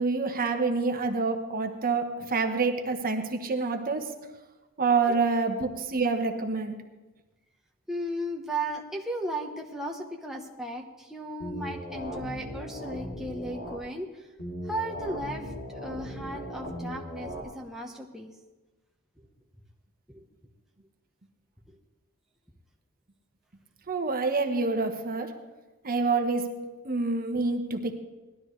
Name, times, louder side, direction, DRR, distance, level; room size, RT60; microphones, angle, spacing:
voice 1, 0.0-4.2 4.8-6.7 23.9-25.3 25.8-26.5 26.8-27.9, right 4 dB, 40° right, 5 dB, 1.2 m, -27 dB
voice 2, 7.9-14.3 14.6-18.3 19.2-19.3 20.1-20.2 21.7-21.8, right 1 dB, ahead, -1 dB, 1.0 m, -36 dB
sound 1, 11.4-13.8 14.4-17.4, equal, 65° left, 3.2 m, -38 dB
18.5 x 12.5 x 3.2 m, 1.2 s
head